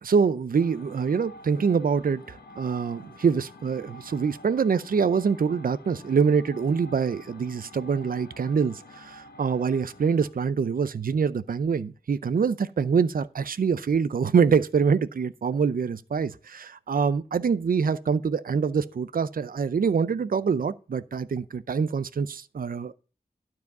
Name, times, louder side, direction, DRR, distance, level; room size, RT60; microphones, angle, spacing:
voice 1, 0.0-22.9, right 6 dB, 60° right, 0.5 m, -25 dB
sound 1, 0.6-10.4, left 2 dB, 90° left, 1.2 m, -48 dB
12.0 x 4.8 x 5.4 m
wide cardioid pair, 95°, 16 cm